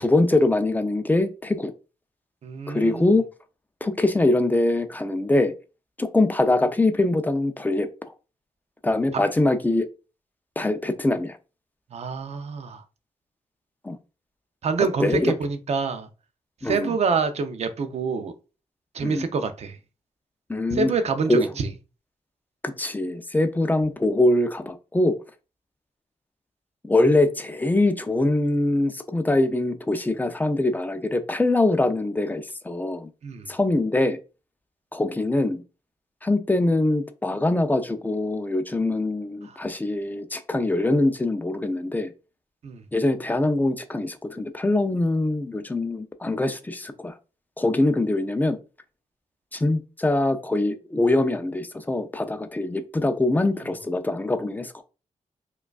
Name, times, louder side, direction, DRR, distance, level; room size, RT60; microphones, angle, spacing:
voice 1, 0.0-1.7 2.7-3.3 3.8-5.5 6.0-7.9 8.8-9.9 10.6-11.4 13.8-14.0 15.0-15.3 16.6-17.0 19.0-19.2 20.5-20.9 21.3-21.4 22.8-25.2 26.8-33.1 33.5-34.2 34.9-35.6 36.2-42.1 42.9-47.1 47.6-48.6 49.5-54.8, left 2 dB, 15° left, 0.4 m, -23 dB
voice 2, 2.4-3.1 11.9-12.8 14.6-16.1 16.6-18.3 18.9-19.8 20.7-21.7 33.2-33.5 39.4-39.6 42.6-42.8, right 5 dB, 60° right, 0.5 m, -26 dB
4.7 x 2.3 x 2.3 m
wide cardioid pair, 110°, 13 cm